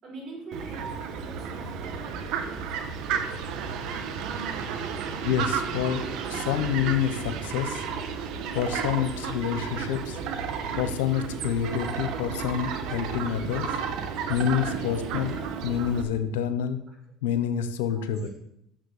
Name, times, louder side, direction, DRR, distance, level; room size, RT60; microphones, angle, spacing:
voice 1, 0.0-2.7 14.8-14.9 15.2-15.4 18.0-18.1, right 3 dB, 55° right, 0 dB, 5.4 m, -44 dB
Fowl, 0.5-16.0, right 6 dB, 70° right, 1.4 m, -32 dB
voice 2, 5.2-6.0 6.3-7.8 8.5-10.2 10.8-13.7 14.3-16.8 17.2-18.3, left 9 dB, 85° left, 10 dB, 1.1 m, -28 dB
10.5 x 7.0 x 6.6 m, 0.77 s
supercardioid pair, 80°, 0 cm